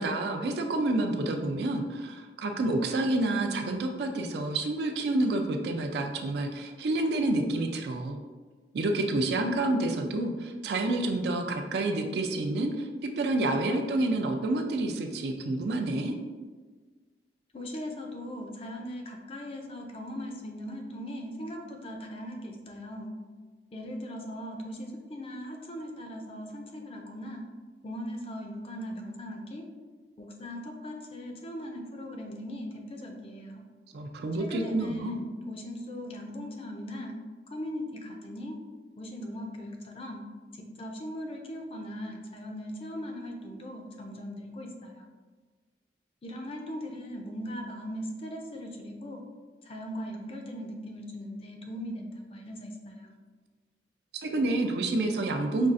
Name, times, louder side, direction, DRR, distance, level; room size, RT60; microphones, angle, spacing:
voice 1, 0.0-8.2 8.7-12.9 13.2-16.1 33.9-35.2 54.1-55.7, right 2 dB, 65° right, 4 dB, 0.4 m, -28 dB
voice 2, 17.5-23.1 23.7-27.5 27.8-29.6 30.2-33.6 34.4-37.2 37.5-38.6 39.0-40.2 40.5-45.0 46.2-49.2 49.6-53.1, equal, 35° left, 2 dB, 0.4 m, -39 dB
5.2 x 2.4 x 2.5 m, 1.4 s
head